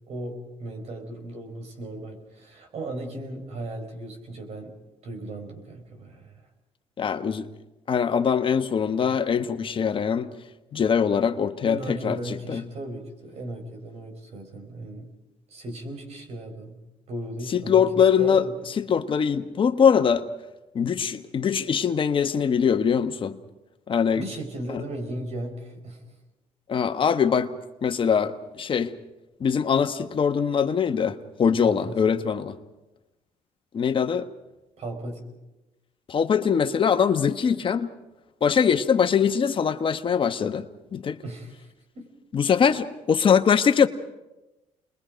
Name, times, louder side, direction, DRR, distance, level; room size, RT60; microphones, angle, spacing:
voice 1, 0.1-4.7 5.0-6.5 11.6-15.1 15.5-16.8 17.1-18.6 24.1-26.1 31.6-32.1 34.8-35.2 41.2-42.1, right 1 dB, 60° right, 4.9 m, -37 dB
voice 2, 7.0-7.5 7.9-10.3 10.7-12.6 17.5-18.5 18.8-20.2 20.7-23.4 23.9-24.2 26.7-27.5 27.8-28.9 29.4-32.6 33.7-34.3 36.1-37.9 38.4-40.7 40.9-41.2 42.3-43.9, left 7 dB, 45° left, 1.1 m, -22 dB
29.0 x 21.5 x 5.2 m
cardioid pair, 100°, 12 cm